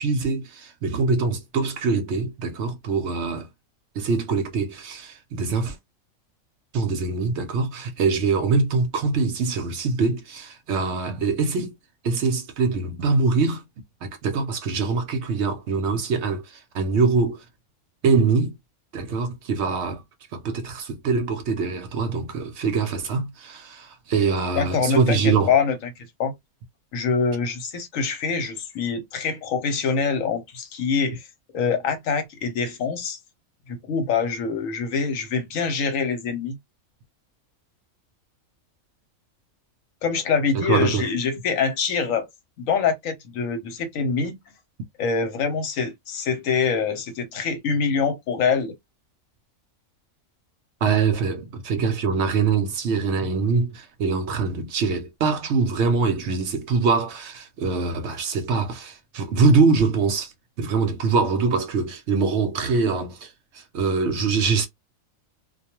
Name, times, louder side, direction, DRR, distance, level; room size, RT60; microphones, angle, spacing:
voice 1, 0.0-3.5 4.0-5.8 6.7-11.8 12.0-13.6 14.0-17.4 18.0-18.5 18.9-20.0 20.3-25.5 40.5-41.1 50.8-64.7, right 4 dB, 65° right, 0.8 m, -23 dB
voice 2, 24.6-25.9 26.2-26.3 26.9-31.2 31.5-33.2 33.7-36.6 40.0-42.3 42.6-44.3 45.0-48.7, left 5 dB, 80° left, 1.2 m, -24 dB
2.3 x 2.2 x 2.8 m
omnidirectional pair, 1.4 m